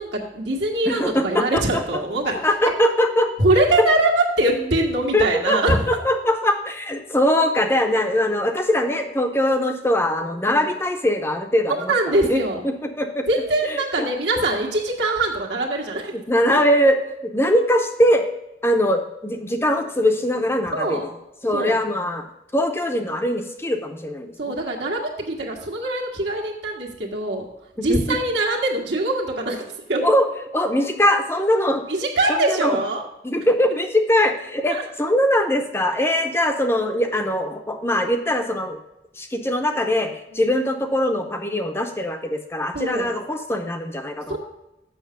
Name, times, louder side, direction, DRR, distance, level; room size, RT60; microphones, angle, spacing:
voice 1, 0.0-2.3 3.4-5.8 10.5-10.7 11.7-12.6 13.3-16.1 16.5-16.6 20.7-21.0 21.5-21.7 24.4-27.5 27.8-30.0 31.9-33.0 34.7-34.8 42.7-43.1 44.3-44.4, right 2 dB, 75° right, -2 dB, 1.7 m, -23 dB
voice 2, 0.9-1.8 2.4-3.6 4.6-4.7 5.1-13.2 13.6-14.1 16.1-18.3 18.6-21.1 21.4-22.3 22.5-24.3 27.9-28.2 30.0-30.3 30.5-31.8 32.3-32.8 33.2-38.8 39.2-44.4, left 1 dB, 15° left, 5 dB, 0.6 m, -22 dB
7.3 x 6.1 x 5.7 m, 0.92 s
head